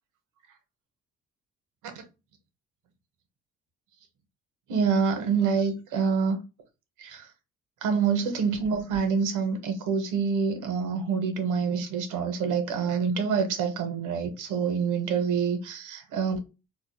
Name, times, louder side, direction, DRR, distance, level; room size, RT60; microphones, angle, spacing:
voice 1, 4.7-6.4 7.0-7.3 7.8-16.4, right 6 dB, 90° right, 0.9 m, -26 dB
4.3 x 2.3 x 2.2 m
cardioid pair, 90°, 30 cm